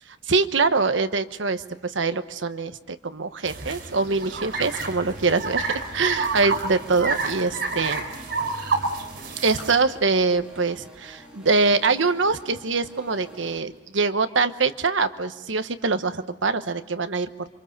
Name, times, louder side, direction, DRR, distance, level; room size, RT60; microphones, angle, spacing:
voice 1, 0.3-8.0 9.4-17.5, right 4 dB, 80° right, 10 dB, 1.1 m, -24 dB
sound 1, 3.4-9.7, right 3 dB, 65° right, 3.7 m, -29 dB
sound 2, 4.2-13.6, right 1 dB, 5° right, 4.1 m, -49 dB
sound 3, 9.5-11.6 11.9-12.0, left 3 dB, 30° left, 4.5 m, -48 dB
28.0 x 25.0 x 6.6 m, 0.94 s
head